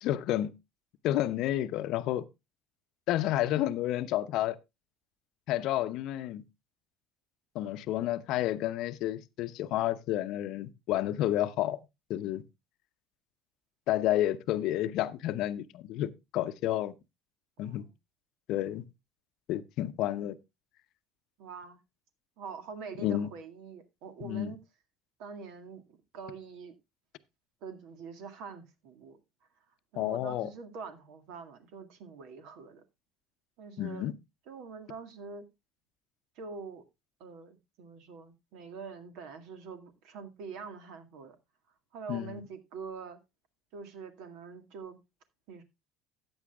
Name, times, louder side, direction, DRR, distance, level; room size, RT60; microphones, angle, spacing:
voice 1, 0.0-0.5 1.0-2.2 3.1-4.6 5.5-6.4 7.5-11.8 12.1-12.4 13.9-16.9 17.6-17.8 18.5-18.8 19.5-20.4 23.0-23.3 24.2-24.5 30.0-30.5 33.8-34.1 42.1-42.4, left 13 dB, 60° left, 0.7 m, -30 dB
voice 2, 21.4-21.8 22.4-24.6 25.2-26.8 27.6-29.2 29.9-32.8 33.6-34.1 34.5-35.4 36.4-36.8 37.2-41.4 41.9-43.2 43.7-45.0 45.5-45.6, right 5 dB, 65° right, 1.9 m, -44 dB
14.0 x 8.9 x 2.3 m
hypercardioid pair, 70°, 0 cm